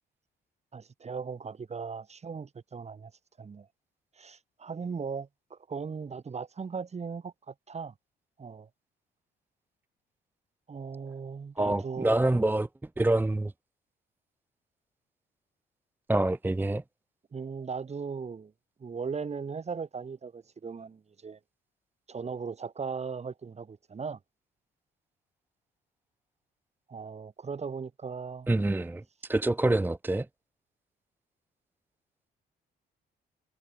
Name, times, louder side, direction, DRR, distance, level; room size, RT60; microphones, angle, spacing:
voice 1, 0.7-3.1 3.4-3.7 4.1-7.9 8.4-8.7 10.7-12.5 17.3-18.5 18.8-21.4 22.1-24.2 26.9-28.5, right 5 dB, 35° right, 1.6 m, -38 dB
voice 2, 11.6-12.7 13.0-13.5 16.1-16.8 28.5-30.3, right 2 dB, 10° right, 0.6 m, -26 dB
cardioid pair, 90°, 20 cm